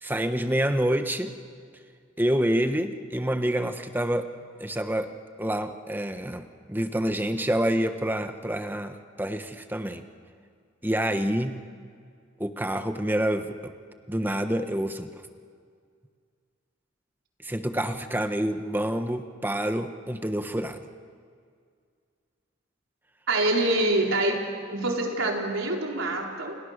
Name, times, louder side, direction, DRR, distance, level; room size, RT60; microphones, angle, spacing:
voice 1, 0.0-1.3 2.2-4.2 4.6-5.1 5.4-10.0 10.8-11.6 12.4-13.7 14.1-15.2 17.4-20.8, right 1 dB, 10° right, 8 dB, 1.3 m, -27 dB
voice 2, 23.3-24.4 24.7-26.6, right 2 dB, 90° right, 0 dB, 4.2 m, -25 dB
29.5 x 28.5 x 6.7 m, 2.1 s
head